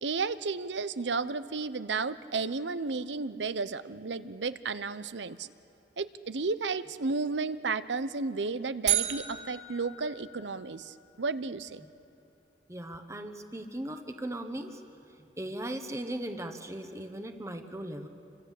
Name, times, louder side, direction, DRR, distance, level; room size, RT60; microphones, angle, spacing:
voice 1, 0.0-5.5 6.0-11.8, right 4 dB, 90° right, 14 dB, 0.8 m, -33 dB
sound 1, 8.9-11.0, right 12 dB, 40° right, 2.8 m, -33 dB
voice 2, 12.7-14.8 15.4-18.1, right 1 dB, 15° right, 6 dB, 1.2 m, -38 dB
27.5 x 25.5 x 8.4 m, 2.6 s
head